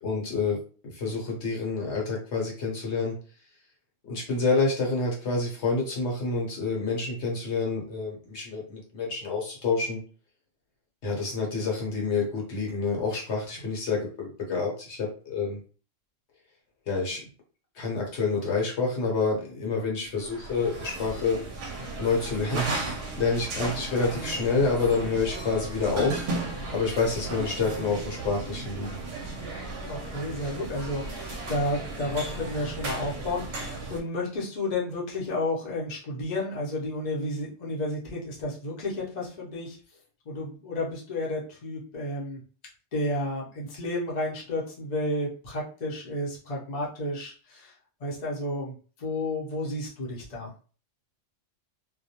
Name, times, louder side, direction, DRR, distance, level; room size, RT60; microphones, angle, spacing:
voice 1, 0.0-3.1 4.0-10.0 11.0-15.6 16.9-17.2 17.7-21.4 22.0-26.3 26.7-29.0, left 4 dB, 65° left, -1 dB, 1.0 m, -28 dB
sound 1, 20.1-34.0, right 2 dB, 65° right, 0.8 m, -35 dB
voice 2, 29.8-39.8 40.3-42.4 42.9-47.7 48.0-50.5, left 1 dB, 40° left, -4 dB, 0.7 m, -32 dB
2.3 x 2.2 x 2.7 m, 0.39 s
omnidirectional pair, 1.3 m